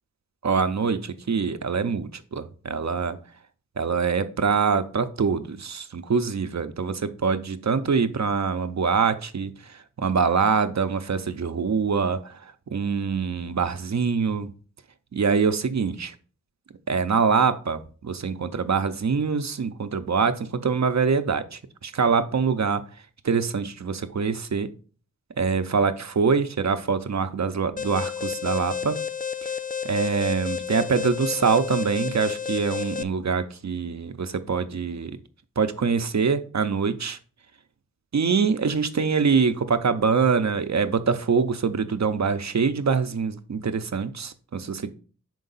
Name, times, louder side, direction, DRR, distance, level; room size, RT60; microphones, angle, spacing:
voice 1, 0.4-3.2 3.8-12.4 12.7-14.5 15.1-16.1 16.9-22.8 23.2-24.7 25.4-29.0 29.4-29.5 29.8-35.1 35.6-37.2 38.1-44.9, right 5 dB, 60° right, 0.5 m, -24 dB
Alarm, 27.8-33.0, left 7 dB, 30° left, 0.3 m, -31 dB
5.6 x 4.6 x 3.9 m
wide cardioid pair, 60°, 32 cm